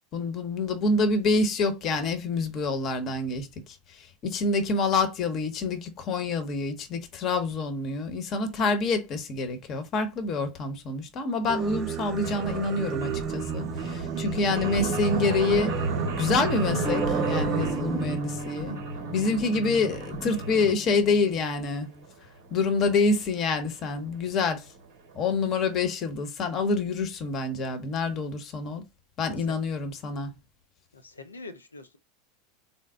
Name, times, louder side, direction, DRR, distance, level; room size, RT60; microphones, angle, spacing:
voice 1, 0.1-3.8 4.2-15.8 16.2-18.8 19.1-21.9 22.5-24.6 25.1-28.8 29.2-30.3, left 3 dB, 40° left, 0.9 m, -27 dB
Singing, 11.5-18.2, right 8 dB, 35° right, 0.4 m, -32 dB
sound 1, 12.2-20.7 21.3-21.4 21.7-21.8 22.1-22.2 22.4-22.5 22.8-22.9 23.6-23.7 24.0-24.1 24.4-24.5 24.7-24.8 25.1-25.2, right 3 dB, 65° right, 0.8 m, -33 dB
sound 2, 16.8-22.0, equal, 10° left, 0.6 m, -37 dB
voice 2, 30.9-32.0, left 3 dB, 85° left, 0.5 m, -44 dB
4.1 x 2.0 x 3.5 m
figure-of-eight pair, 85°, 0 cm